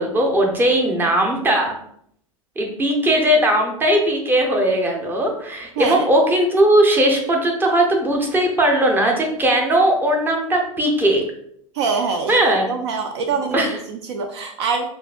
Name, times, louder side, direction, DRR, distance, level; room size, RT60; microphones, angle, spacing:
voice 1, 0.0-1.8 2.6-11.2 12.3-12.7 13.5-13.8, right 1 dB, 10° right, 2 dB, 0.7 m, -18 dB
voice 2, 11.7-12.4 12.7-13.6 13.9-14.9, right 5 dB, 50° right, 4 dB, 0.4 m, -24 dB
5.1 x 2.6 x 2.4 m, 0.69 s
figure-of-eight pair, 90°, 17 cm